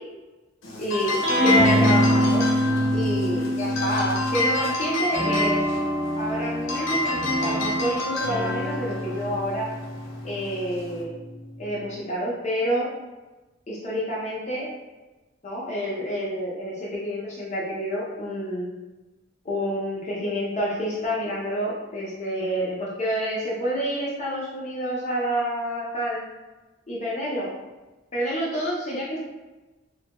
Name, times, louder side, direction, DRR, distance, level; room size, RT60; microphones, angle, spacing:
sound 1, 0.6-11.0, left 2 dB, 80° left, 0.7 m, -29 dB
voice 1, 0.8-1.2 1.4-2.4 2.9-5.6 6.1-9.7 10.2-11.2 11.6-12.9 13.7-14.7 15.4-18.7 19.4-26.2 26.9-27.5 28.1-29.2, equal, 35° left, -6 dB, 0.5 m, -28 dB
sound 2, 1.2-4.6 5.1-11.9, equal, 30° right, 0.6 m, -25 dB
3.2 x 2.2 x 2.8 m, 1.1 s
head